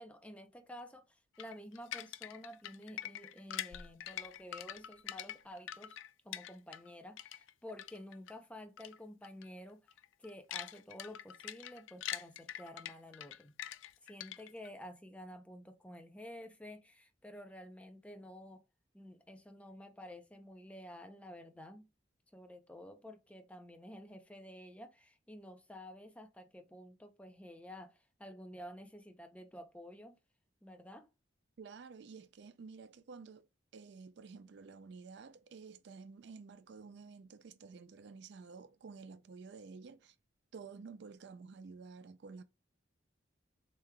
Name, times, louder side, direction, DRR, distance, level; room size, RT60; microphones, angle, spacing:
voice 1, 0.0-6.0 6.2-9.8 10.2-13.5 14.0-18.6 18.9-21.9 22.3-30.2 30.6-31.1, left 1 dB, 5° left, 0.5 m, -51 dB
sound 1, 1.4-6.9 7.2-8.3 8.8-9.0 9.2-9.5 9.9-14.7, left 11 dB, 75° left, 0.3 m, -44 dB
voice 2, 31.6-33.5 33.7-40.2 40.5-42.4, right 5 dB, 55° right, 0.3 m, -51 dB
7.0 x 3.2 x 2.2 m
head